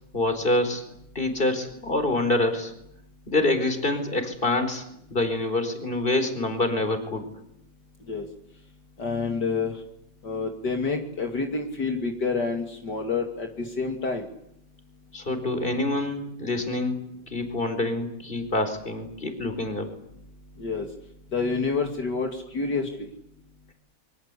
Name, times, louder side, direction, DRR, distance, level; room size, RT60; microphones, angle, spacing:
voice 1, 0.1-0.8 1.1-2.7 3.3-4.8 5.1-7.2 15.1-19.9, left 2 dB, 30° left, 7 dB, 4.7 m, -26 dB
voice 2, 9.0-9.7 10.2-14.3 20.6-20.9 21.3-23.1, left 4 dB, 65° left, 3 dB, 3.1 m, -28 dB
26.5 x 24.0 x 8.4 m, 0.76 s
omnidirectional pair, 2.0 m